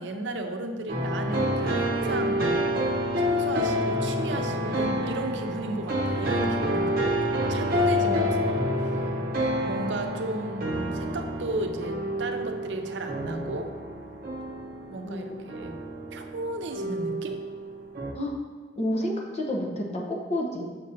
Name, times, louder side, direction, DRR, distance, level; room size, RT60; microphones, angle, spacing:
voice 1, 0.0-2.6 3.2-8.2 8.5-9.0 9.6-13.7 14.9-15.8 16.1-17.4, right 2 dB, 85° right, 5 dB, 0.6 m, -34 dB
sound 1, 0.9-18.1, equal, 55° right, 0.7 m, -28 dB
voice 2, 8.0-8.4 15.0-15.3 18.1-18.4 18.8-20.7, left 1 dB, 35° left, 0 dB, 0.8 m, -30 dB
6.4 x 5.8 x 2.7 m, 1.5 s
head